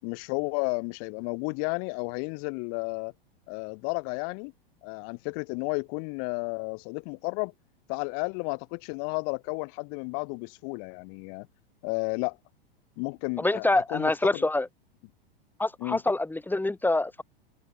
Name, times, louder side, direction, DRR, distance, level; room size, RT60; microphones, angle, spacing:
voice 1, 0.0-3.1 3.5-4.5 4.8-7.5 7.9-11.5 11.8-12.4 13.0-14.5 15.8-16.0, left 40 dB or more, 50° left, 5.0 m, -32 dB
voice 2, 13.4-14.7 15.6-17.2, left 2 dB, 5° left, 4.6 m, -26 dB
hypercardioid pair, 100°, 29 cm